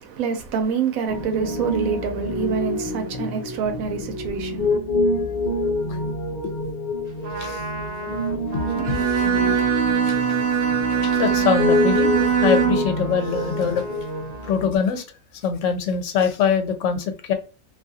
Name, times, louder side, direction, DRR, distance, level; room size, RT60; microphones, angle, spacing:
voice 1, 0.0-4.7 5.5-5.6, right 6 dB, 85° right, 1.1 m, -26 dB
Piano, 1.1-14.8, left 1 dB, 50° left, 0.5 m, -27 dB
Trumpet, 7.1-14.7, right 2 dB, 50° right, 0.5 m, -37 dB
voice 2, 8.3-9.0 10.1-10.2 10.9-13.9 14.4-15.0 15.4-17.3, left 7 dB, 70° left, 1.0 m, -23 dB
Bowed string instrument, 8.8-13.0, right 7 dB, 65° right, 0.9 m, -21 dB
2.6 x 2.4 x 2.6 m
omnidirectional pair, 1.4 m